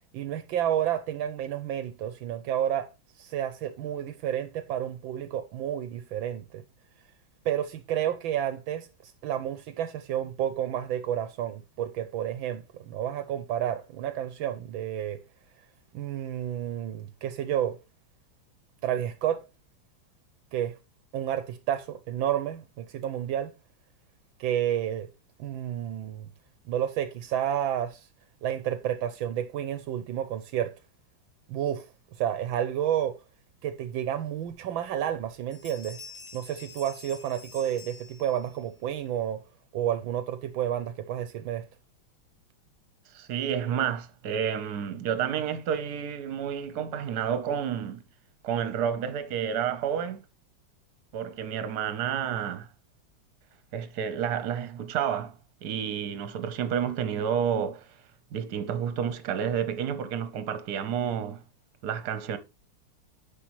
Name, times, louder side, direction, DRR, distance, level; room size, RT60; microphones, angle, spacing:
voice 1, 0.1-2.9 3.2-6.6 7.4-15.2 15.9-17.8 18.8-19.4 20.5-20.8 21.1-23.5 24.4-25.1 25.4-26.3 26.7-28.1 28.4-30.7 31.5-31.9 32.2-33.2 33.6-36.0 36.3-39.4 39.7-41.6, right 10 dB, 75° right, 1.4 m, -30 dB
sound 1, 35.2-35.3 35.5-38.7, left 4 dB, 45° left, 2.8 m, -48 dB
voice 2, 43.1-48.0 48.4-50.2 51.1-52.7 53.7-55.4 55.6-57.9 58.3-61.4 61.8-62.4, right 8 dB, 60° right, 1.3 m, -30 dB
9.7 x 5.9 x 3.1 m
omnidirectional pair, 2.2 m